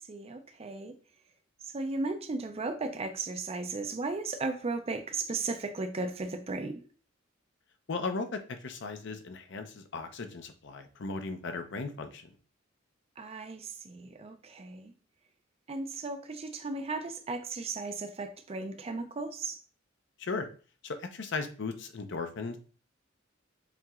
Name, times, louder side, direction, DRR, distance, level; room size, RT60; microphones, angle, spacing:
voice 1, 0.1-0.9 1.6-6.8 13.2-14.9 15.7-19.6, right 3 dB, 30° right, 8 dB, 0.4 m, -36 dB
voice 2, 7.9-12.3 20.2-20.5 20.8-22.6, left 4 dB, 60° left, 7 dB, 0.6 m, -37 dB
7.3 x 2.8 x 2.4 m, 0.39 s
head